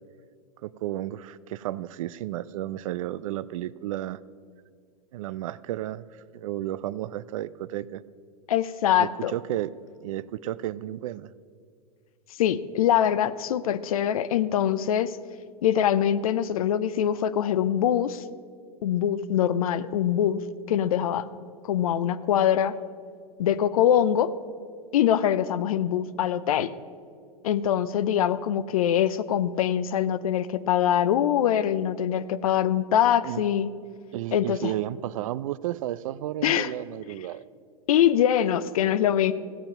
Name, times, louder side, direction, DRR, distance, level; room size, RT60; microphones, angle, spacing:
voice 1, 0.6-4.2 5.1-8.0 9.0-9.7 10.0-11.3 33.2-33.4 34.1-37.4, right 13 dB, 60° right, 19 dB, 0.4 m, -32 dB
voice 2, 8.5-9.3 12.4-15.2 15.6-18.2 18.8-20.4 20.7-21.3 21.6-22.7 23.4-24.3 24.9-26.7 27.4-33.7 34.3-34.7 36.4-36.7 37.9-39.3, left 10 dB, 70° left, 16 dB, 0.6 m, -23 dB
16.0 x 7.1 x 5.3 m, 2.3 s
hypercardioid pair, 100°, 19 cm